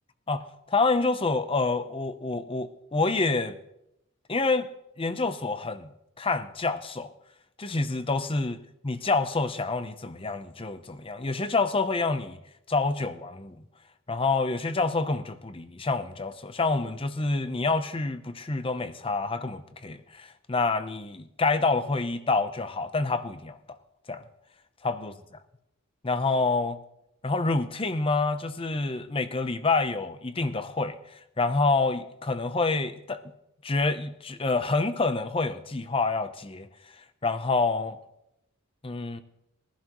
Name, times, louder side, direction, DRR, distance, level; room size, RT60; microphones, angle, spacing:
voice 1, 0.3-3.6 4.3-4.7 5.0-5.9 6.2-7.1 7.6-12.4 12.7-13.6 14.1-23.6 24.1-24.2 24.8-25.1 26.0-26.8 27.2-31.0 31.4-33.2 33.6-36.7 37.2-38.0 38.8-39.2, left 3 dB, 25° left, 0.7 m, -27 dB
21.0 x 11.5 x 3.0 m
head